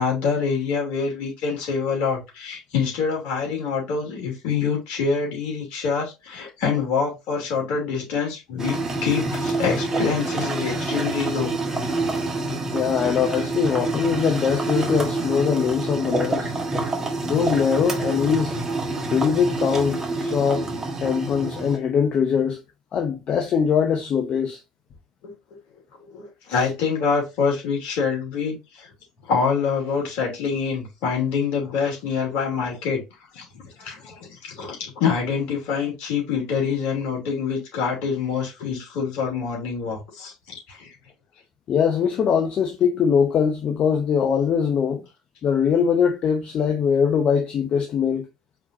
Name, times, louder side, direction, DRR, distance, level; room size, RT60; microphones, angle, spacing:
voice 1, 0.0-11.5 12.5-13.0 25.2-25.3 26.1-28.9 29.3-33.0 33.3-40.3 40.7-40.9, left 5 dB, 65° left, 2.8 m, -26 dB
sound 1, 8.6-21.8, right 2 dB, 20° right, 1.6 m, -27 dB
voice 2, 12.7-16.5 17.3-18.6 19.1-20.7 21.0-22.6 22.9-24.6 41.7-45.0 45.4-48.3, left 7 dB, 45° left, 0.8 m, -22 dB
4.7 x 4.0 x 2.6 m
hypercardioid pair, 65°, 2 cm